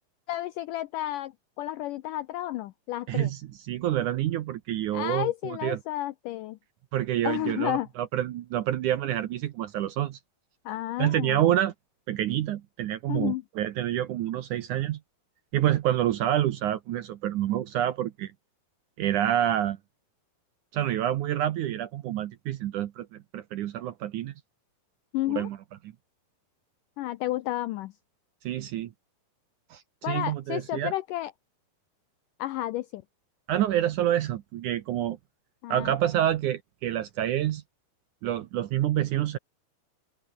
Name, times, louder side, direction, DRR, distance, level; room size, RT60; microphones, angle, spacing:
voice 1, 0.3-3.3 4.9-6.6 7.2-7.9 10.7-11.5 13.1-13.4 25.1-25.5 27.0-27.9 30.0-31.3 32.4-33.0 35.6-36.0, left 15 dB, 80° left, 1.9 m, -31 dB
voice 2, 3.1-3.4 3.7-5.8 6.9-10.2 11.0-11.7 12.1-15.0 15.5-18.3 19.0-19.8 20.7-24.3 25.4-25.6 28.4-28.9 29.7-30.9 33.5-35.2 35.7-37.6 38.2-39.4, right 12 dB, 70° right, 2.0 m, -27 dB
open air
omnidirectional pair, 4.5 m